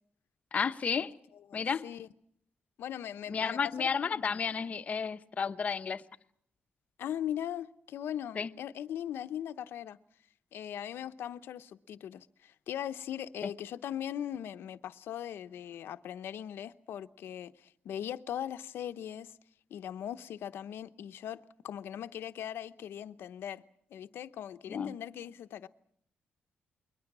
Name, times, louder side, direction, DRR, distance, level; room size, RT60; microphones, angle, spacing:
voice 1, 0.5-1.1 1.5-1.8 3.3-6.0 8.4-8.5 13.4-13.5 24.7-24.9, left 6 dB, 40° left, 0.9 m, -32 dB
voice 2, 1.5-2.1 2.8-4.4 7.0-10.0 10.5-19.3 19.7-23.6 23.9-25.7, left 10 dB, 85° left, 0.9 m, -40 dB
29.5 x 22.5 x 6.1 m
wide cardioid pair, 160°, 4 cm